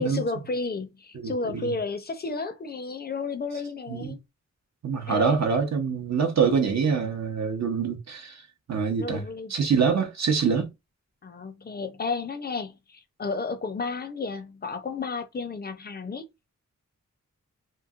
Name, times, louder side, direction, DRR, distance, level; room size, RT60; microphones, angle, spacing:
voice 1, 0.0-4.2 5.1-5.4 9.0-9.5 11.2-16.3, left 4 dB, 30° left, 0.5 m, -32 dB
voice 2, 1.1-1.8 3.9-4.2 4.8-8.4 8.7-9.2 9.5-10.7, right 6 dB, 60° right, 0.7 m, -25 dB
3.0 x 2.7 x 2.4 m
wide cardioid pair, 155°, 31 cm